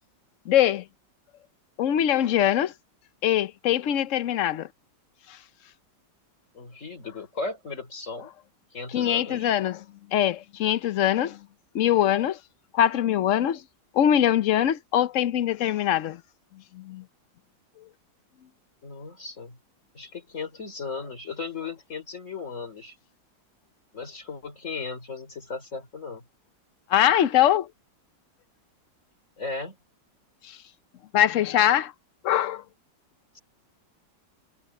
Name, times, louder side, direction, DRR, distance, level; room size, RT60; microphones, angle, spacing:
voice 1, 0.5-0.8 1.8-2.7 3.2-4.7 8.9-9.8 10.1-11.4 11.7-12.4 12.7-13.6 13.9-16.2 16.7-17.0 26.9-27.7 31.1-31.9 32.2-32.6, left 11 dB, 60° left, 0.8 m, -22 dB
voice 2, 6.5-8.3 8.7-9.5 18.8-19.6 19.9-23.0 23.9-26.2 29.4-29.8, left 4 dB, 40° left, 3.5 m, -36 dB
omnidirectional pair, 2.0 m